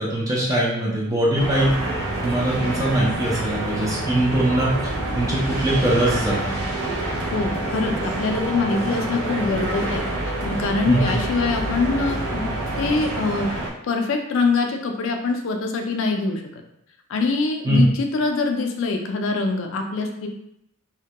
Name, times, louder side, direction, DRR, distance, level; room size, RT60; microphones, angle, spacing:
voice 1, 0.0-1.7 2.2-4.7 5.1-6.6 10.9-11.1 17.6-17.8, right 1 dB, 15° right, -5 dB, 0.4 m, -22 dB
sound 1, 1.3-13.7, right 2 dB, 80° right, 0.5 m, -27 dB
voice 2, 7.3-10.0 10.4-12.5 12.8-13.5 13.9-16.6 17.1-20.3, left 3 dB, 65° left, 3 dB, 0.4 m, -24 dB
2.1 x 2.1 x 2.7 m, 0.78 s
head